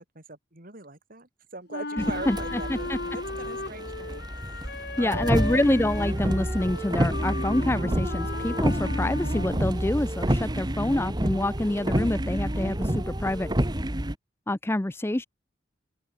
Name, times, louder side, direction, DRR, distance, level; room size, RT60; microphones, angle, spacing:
voice 1, 0.0-5.4, right 3 dB, 50° right, 3.9 m, -42 dB
Wind instrument woodwind instrument, 1.7-9.9, left 2 dB, 55° left, 4.3 m, -36 dB
voice 2, 2.0-3.0 5.0-13.5 14.5-15.3, left 1 dB, 15° left, 0.5 m, -27 dB
sound 1, 2.0-14.1, right 1 dB, 20° right, 1.9 m, -29 dB
open air
head